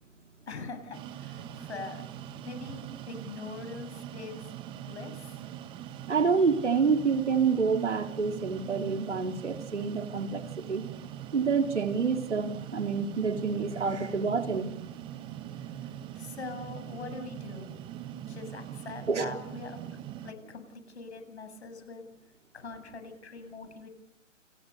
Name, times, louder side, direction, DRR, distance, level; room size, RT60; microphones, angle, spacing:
voice 1, 0.5-2.0 2.4-4.5 4.8-5.4 16.1-17.7 18.3-19.8 20.2-22.0 22.5-23.9, left 4 dB, 60° left, 8 dB, 7.7 m, -43 dB
sound 1, 0.9-20.3, right 10 dB, 15° right, 1.3 m, -42 dB
voice 2, 6.1-10.8 11.3-14.7 19.1-19.3, right 5 dB, 65° right, 7 dB, 3.6 m, -28 dB
29.5 x 29.0 x 6.8 m, 0.76 s
figure-of-eight pair, 135°, 38 cm